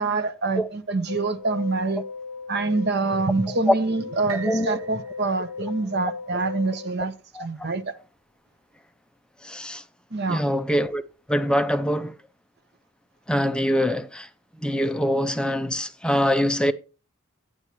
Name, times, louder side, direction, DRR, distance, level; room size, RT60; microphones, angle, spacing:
voice 1, 0.0-2.0 2.5-7.1 7.4-7.9 10.1-10.5, right 3 dB, 50° right, 0.9 m, -26 dB
sound 1, 1.1-6.9, left 5 dB, 90° left, 0.5 m, -37 dB
sound 2, 4.3-8.2 8.8-8.9, right 6 dB, 85° right, 1.5 m, -44 dB
voice 2, 4.4-4.8 7.3-7.7 9.4-9.8 10.3-11.0 11.3-12.2 13.3-16.7, equal, 5° left, 0.4 m, -24 dB
9.8 x 9.7 x 3.0 m
head